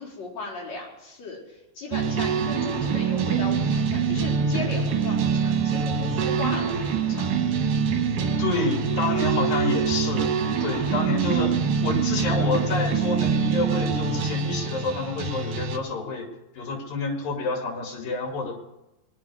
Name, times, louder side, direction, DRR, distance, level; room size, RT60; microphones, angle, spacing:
voice 1, 0.0-7.3, left 2 dB, 50° left, -6 dB, 5.4 m, -36 dB
sound 1, 1.9-15.8, right 6 dB, 70° right, 2.9 m, -25 dB
voice 2, 8.4-10.3 10.6-11.5 11.8-16.2 16.5-18.5, left 2 dB, 75° left, 2 dB, 4.1 m, -28 dB
21.5 x 10.5 x 4.9 m, 0.93 s
omnidirectional pair, 4.0 m